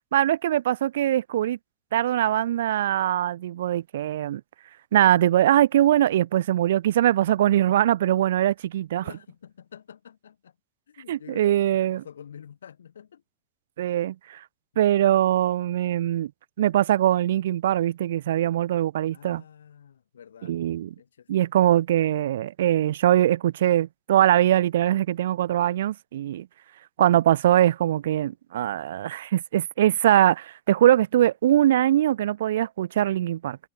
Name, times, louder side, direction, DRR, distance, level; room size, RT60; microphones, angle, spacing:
voice 1, 0.1-1.6 1.9-4.4 4.9-9.1 11.1-12.0 13.8-14.4 14.8-16.3 16.6-19.4 20.4-20.9 21.3-26.5 27.0-33.6, right 12 dB, 60° right, 1.3 m, -22 dB
voice 2, 9.0-10.6 10.9-13.2 19.1-20.6 21.0-21.5, left 8 dB, 65° left, 5.5 m, -47 dB
figure-of-eight pair, 90°, 0 cm